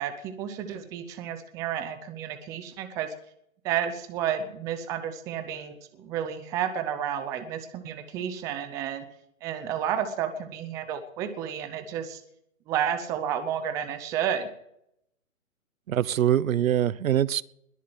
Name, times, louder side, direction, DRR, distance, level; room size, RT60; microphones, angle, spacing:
voice 1, 0.0-3.1 3.6-9.1 9.4-12.2 12.7-14.5, right 9 dB, 10° right, 0.6 m, -31 dB
voice 2, 15.9-17.4, right 11 dB, 70° right, 0.8 m, -23 dB
21.0 x 7.3 x 7.8 m
hypercardioid pair, 150°, 42 cm